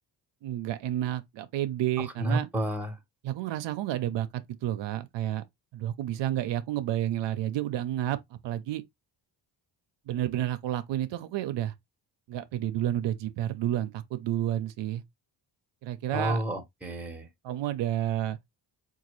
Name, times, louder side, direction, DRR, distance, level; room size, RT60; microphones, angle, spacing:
voice 1, 0.4-2.5 3.2-4.3 4.6-5.4 5.7-8.2 8.4-8.8 10.1-11.7 12.3-15.0 15.8-16.4 17.4-18.4, right 12 dB, 75° right, 0.5 m, -30 dB
voice 2, 2.0-3.0 16.1-17.3, right 1 dB, 5° right, 0.9 m, -30 dB
3.9 x 2.3 x 3.0 m
cardioid pair, 115°, 45 cm